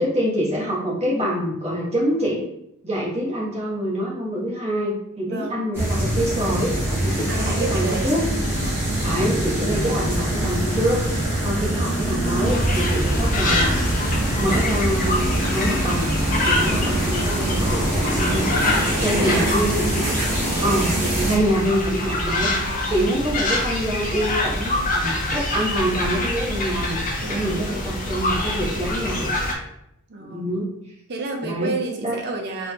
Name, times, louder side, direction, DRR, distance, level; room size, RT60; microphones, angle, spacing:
voice 1, 0.0-2.5 2.8-6.7 7.0-8.2 9.0-13.9 14.4-16.1 16.4-18.5 19.0-20.2 20.5-29.3 30.2-30.7 31.4-31.7 32.0-32.2, equal, 30° right, -6 dB, 1.2 m, -25 dB
voice 2, 5.3-5.7 7.3-8.1 8.5-8.9 18.9-19.6 20.4-21.0 22.4-22.9 27.2-27.6 30.1-30.5 31.1-32.7, right 3 dB, 50° right, 2 dB, 0.6 m, -31 dB
sound 1, 5.7-21.4, right 1 dB, 10° right, 1.1 m, -24 dB
sound 2, 12.4-29.5, left 1 dB, 35° left, 0.6 m, -25 dB
4.1 x 2.4 x 2.8 m, 0.79 s
head